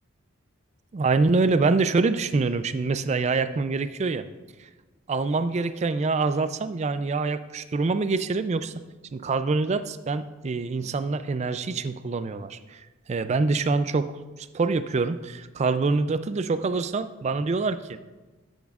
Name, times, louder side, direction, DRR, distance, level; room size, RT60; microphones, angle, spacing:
voice 1, 0.9-4.3 5.1-8.7 9.1-18.0, right 3 dB, 35° right, 12 dB, 0.3 m, -25 dB
13.5 x 8.2 x 2.4 m, 1.2 s
head